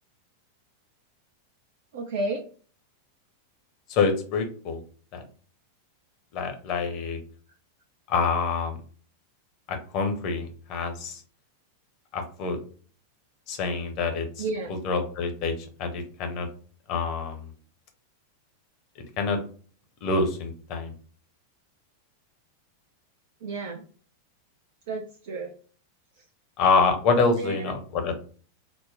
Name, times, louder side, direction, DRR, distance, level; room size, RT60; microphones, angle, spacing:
voice 1, 1.9-2.5 14.4-14.8 23.4-23.8 24.9-25.5 26.2-26.3 27.4-27.7, right 2 dB, 55° right, 3 dB, 0.5 m, -32 dB
voice 2, 3.9-4.8 5.1-5.2 6.3-7.2 8.1-8.8 9.7-11.2 12.1-12.6 13.5-14.3 14.7-15.5 15.8-16.5 16.9-17.5 19.2-19.4 20.0-20.9 26.6-28.1, left 4 dB, 40° left, 4 dB, 0.9 m, -26 dB
4.1 x 2.1 x 3.3 m, 0.42 s
figure-of-eight pair, 90°, 0 cm